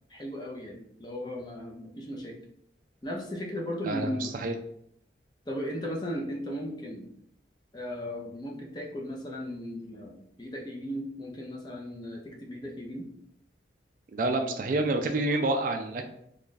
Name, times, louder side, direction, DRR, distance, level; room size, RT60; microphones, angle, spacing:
voice 1, 0.1-2.4 3.0-4.3 5.5-7.1 7.7-13.1, equal, 20° left, 0 dB, 0.5 m, -36 dB
voice 2, 3.8-4.6 14.1-16.0, right 2 dB, 45° right, 5 dB, 0.3 m, -28 dB
3.1 x 2.4 x 3.9 m, 0.73 s
head